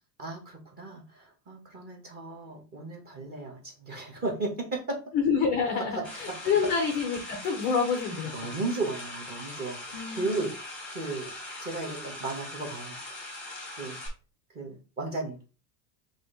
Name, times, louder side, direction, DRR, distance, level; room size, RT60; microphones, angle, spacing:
voice 1, 0.2-5.0 8.3-10.5 10.9-11.3 11.6-13.0 13.8-14.0 14.5-15.4, right 3 dB, 20° right, 0 dB, 1.1 m, -35 dB
voice 2, 5.1-8.5 9.9-10.5, left 5 dB, 20° left, 2 dB, 0.4 m, -28 dB
sound 1, 6.0-14.1, left 1 dB, 5° left, 1.0 m, -41 dB
5.0 x 2.7 x 3.7 m, 0.33 s
cardioid pair, 180°, 46 cm